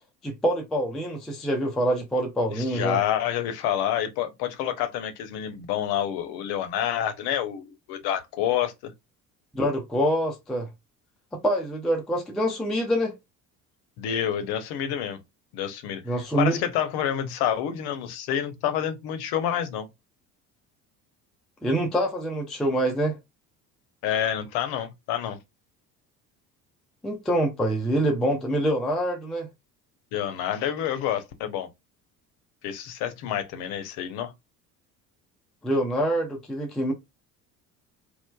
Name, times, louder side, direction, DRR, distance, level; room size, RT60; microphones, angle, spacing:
voice 1, 0.2-3.0 9.5-10.7 11.4-13.1 16.0-16.6 21.6-23.2 27.0-29.5 35.6-36.9, right 1 dB, ahead, 0.3 m, -25 dB
voice 2, 2.5-8.9 14.0-15.2 15.5-16.0 16.4-19.9 24.0-25.4 30.1-31.7 32.6-34.3, left 10 dB, 50° left, 0.7 m, -28 dB
3.0 x 2.0 x 2.2 m
figure-of-eight pair, 60°, 49 cm